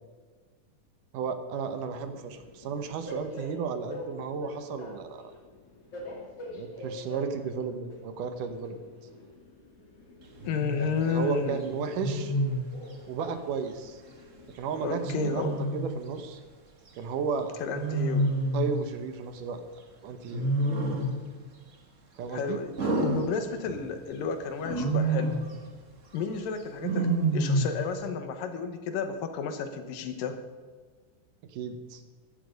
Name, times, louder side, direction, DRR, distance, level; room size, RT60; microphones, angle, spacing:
voice 1, 1.1-5.3 6.5-8.8 10.7-12.3 13.1-14.0 14.6-15.4 15.7-16.4 17.0-17.6 18.5-19.6 20.0-20.5 22.2-22.6 31.5-32.0, right 6 dB, 75° right, 8 dB, 2.5 m, -33 dB
Train, 1.7-15.6, left 1 dB, 45° left, 3.4 m, -45 dB
voice 2, 10.4-11.6 14.8-15.6 17.6-18.3 22.3-25.4 26.1-30.4, left 5 dB, 85° left, 8 dB, 2.9 m, -32 dB
Wild animals, 10.4-10.8 12.0-12.7 15.0-16.0 17.7-18.8 20.3-21.2 22.8-23.9 24.6-25.5 26.8-27.8, right 2 dB, 45° right, 0.9 m, -28 dB
15.0 x 11.5 x 5.2 m, 1.5 s
omnidirectional pair, 3.8 m